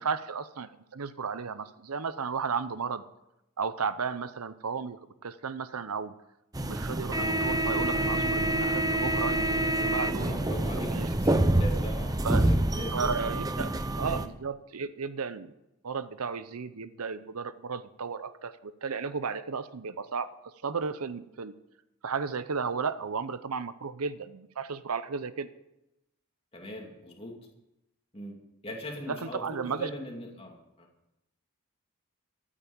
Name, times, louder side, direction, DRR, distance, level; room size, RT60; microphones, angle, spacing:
voice 1, 0.0-3.0 3.6-6.1 6.6-10.6 10.9-11.4 12.2-12.5 12.9-13.7 14.0-15.5 15.8-20.3 20.6-21.5 22.0-25.5 29.1-29.9, right 5 dB, 85° right, 13 dB, 0.7 m, -34 dB
sound 1, 6.5-14.3, right 1 dB, 15° right, 0.6 m, -27 dB
voice 2, 10.2-13.4 13.6-13.7 26.5-27.4 28.1-28.4 28.6-30.9, equal, 25° left, 0 dB, 2.6 m, -41 dB
13.5 x 8.8 x 7.2 m, 0.90 s
head